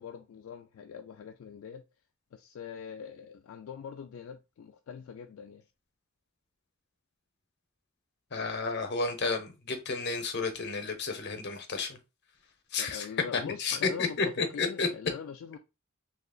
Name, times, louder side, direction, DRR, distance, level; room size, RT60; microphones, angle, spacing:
voice 1, 0.0-1.8 2.3-5.6 12.8-14.2 14.5-15.6, left 7 dB, 70° left, 0.3 m, -42 dB
voice 2, 8.3-12.0 12.7-13.1 13.3-14.9, left 4 dB, 55° left, 0.7 m, -31 dB
3.9 x 2.8 x 2.3 m
head